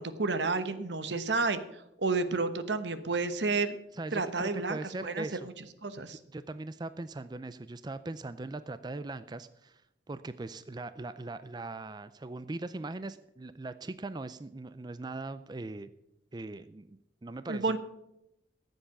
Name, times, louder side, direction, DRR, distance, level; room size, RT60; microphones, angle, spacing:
voice 1, 0.0-1.6 2.0-3.8 4.1-5.4 5.8-6.2 17.5-17.8, right 3 dB, 80° right, 11 dB, 1.1 m, -30 dB
voice 2, 3.9-5.5 6.2-9.8 10.1-15.9 16.3-17.8, right 2 dB, 25° right, 13 dB, 0.4 m, -40 dB
14.5 x 8.0 x 7.1 m, 0.87 s
head